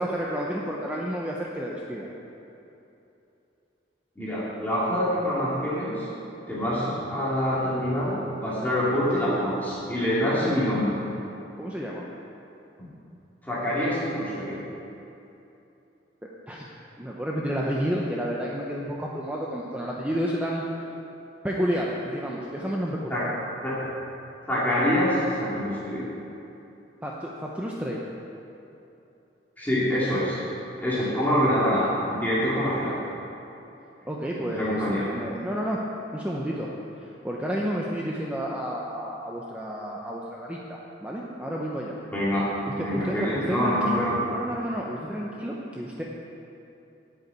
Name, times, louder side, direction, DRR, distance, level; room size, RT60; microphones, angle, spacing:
voice 1, 0.0-2.1 11.6-12.0 16.2-16.6 17.0-20.6 21.4-23.3 27.0-28.0 34.1-34.8 35.1-35.8 36.1-36.7 37.0-42.0 42.6-46.0, equal, 10° right, -3 dB, 0.8 m, -30 dB
voice 2, 4.2-6.1 6.5-10.9 12.8-12.9 13.4-14.6 23.1-23.2 23.6-23.7 24.5-26.1 29.6-30.4 30.8-33.0 34.4-35.1 42.1-42.5 42.7-44.2, equal, 10° left, -10 dB, 2.3 m, -25 dB
8.9 x 6.8 x 8.7 m, 2.9 s
head